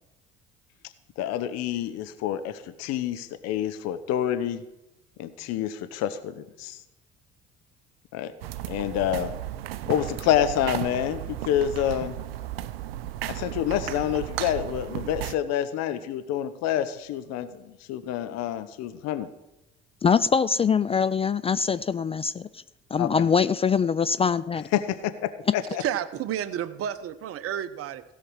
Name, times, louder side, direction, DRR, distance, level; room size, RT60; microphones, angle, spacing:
voice 1, 1.2-4.6 5.2-6.8 8.1-8.3 8.7-9.3 9.9-12.2 13.3-19.3 23.0-23.3 24.7-25.8, left 10 dB, 60° left, 12 dB, 0.9 m, -28 dB
sound 1, 8.4-15.4, right 13 dB, 75° right, 0.5 m, -34 dB
voice 2, 20.0-22.6 22.9-24.6, left 6 dB, 20° left, 15 dB, 0.3 m, -23 dB
voice 3, 25.7-28.0, right 10 dB, 50° right, 13 dB, 0.9 m, -31 dB
16.5 x 5.7 x 6.4 m, 0.94 s
figure-of-eight pair, 55°, 30 cm